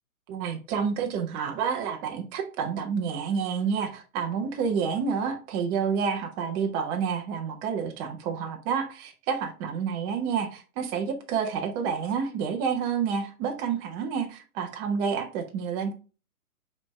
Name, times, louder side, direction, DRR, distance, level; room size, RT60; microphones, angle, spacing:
voice 1, 0.3-15.9, right 6 dB, 10° right, 0.5 m, -29 dB
5.1 x 4.2 x 4.9 m
hypercardioid pair, 130°, 43 cm